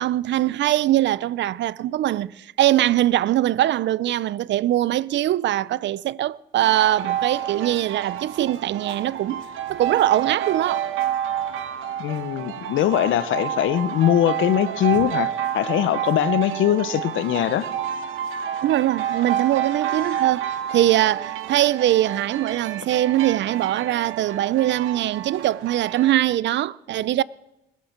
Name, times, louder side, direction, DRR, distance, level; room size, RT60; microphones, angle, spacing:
voice 1, 0.0-10.9 18.6-27.2, right 13 dB, 65° right, 0.5 m, -22 dB
sound 1, 6.6-26.1, right 10 dB, 90° right, 1.1 m, -29 dB
voice 2, 12.0-17.7, left 11 dB, 80° left, 0.7 m, -21 dB
20.5 x 7.5 x 7.2 m
cardioid pair, 90°, 20 cm